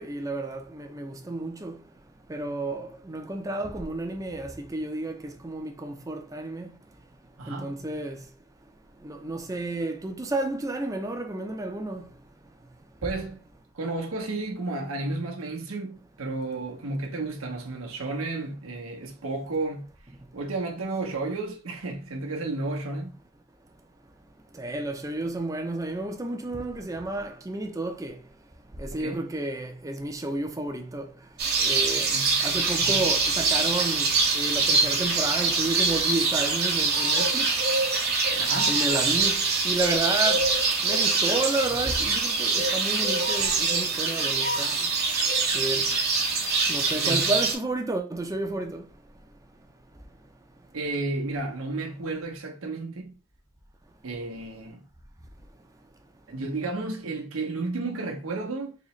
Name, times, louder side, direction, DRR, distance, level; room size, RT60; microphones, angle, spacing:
voice 1, 0.0-1.7 2.3-6.7 7.5-8.2 9.0-12.0 24.6-28.1 28.8-31.1 31.6-32.1 32.4-34.1 34.3-37.5 38.7-40.5 40.8-44.7 45.5-45.9 46.7-48.8, right 2 dB, 15° right, 0.5 m, -31 dB
voice 2, 7.4-7.8 13.0-13.4 13.7-19.9 20.3-23.2 28.9-29.3 32.1-32.5 32.8-33.1 38.3-38.8 46.9-47.3 50.7-53.1 54.0-54.8 56.3-58.8, right 2 dB, 75° right, 0.8 m, -32 dB
sound 1, 31.4-47.5, right 4 dB, 50° right, 1.1 m, -24 dB
4.0 x 2.9 x 3.1 m
head